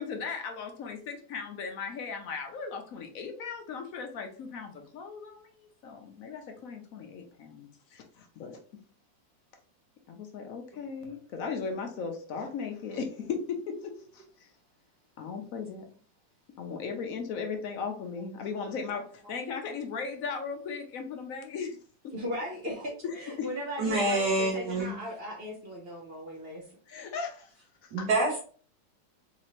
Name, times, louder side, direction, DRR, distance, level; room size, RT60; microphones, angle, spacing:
voice 1, 0.0-8.6 10.1-14.5 15.2-15.8 16.6-21.8 23.0-23.5 26.9-27.5 27.8-28.1, left 5 dB, 65° left, 4 dB, 0.9 m, -37 dB
voice 2, 22.1-26.6, equal, 50° right, -1 dB, 0.7 m, -37 dB
voice 3, 23.8-25.0 27.9-28.4, right 2 dB, 70° right, -4 dB, 1.7 m, -27 dB
4.1 x 2.8 x 3.0 m, 0.43 s
omnidirectional pair, 1.9 m